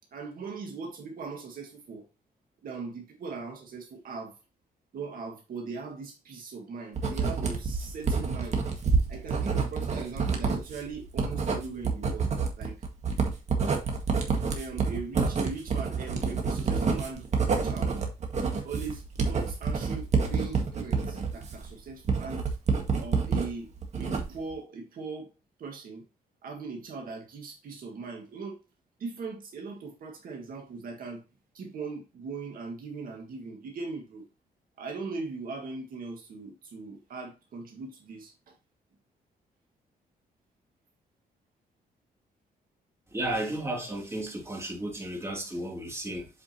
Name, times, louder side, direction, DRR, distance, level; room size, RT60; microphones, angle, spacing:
voice 1, 0.1-2.0 2.6-4.4 4.9-8.7 9.1-12.3 12.6-12.8 14.5-17.3 17.6-18.0 18.6-22.5 23.0-25.3 25.6-26.0 26.4-28.6 29.0-31.2 31.5-34.2 34.8-38.5, right 4 dB, 65° right, 1.9 m, -39 dB
Writing, 7.0-23.5 23.8-24.5, right 5 dB, 45° right, 1.8 m, -28 dB
voice 2, 43.1-46.3, right 1 dB, 15° right, 2.8 m, -33 dB
8.2 x 5.1 x 2.9 m
cardioid pair, 115°, 16 cm